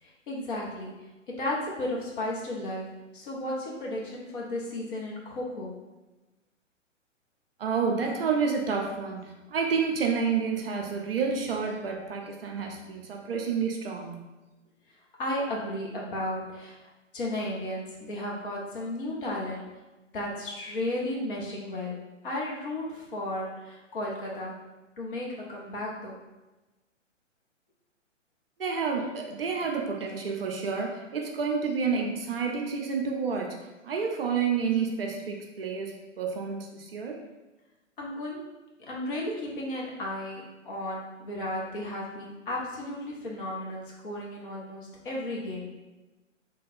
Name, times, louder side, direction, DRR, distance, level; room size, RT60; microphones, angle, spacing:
voice 1, 0.0-1.1 1.4-5.8 15.2-19.8 20.1-24.7 25.0-26.1 38.0-38.5 38.9-45.7, left 1 dB, 45° left, -4 dB, 1.0 m, -34 dB
voice 2, 7.6-14.4 28.6-37.2, right 5 dB, 50° right, 1 dB, 0.6 m, -29 dB
3.3 x 2.2 x 4.3 m, 1.1 s
figure-of-eight pair, 120°, 38 cm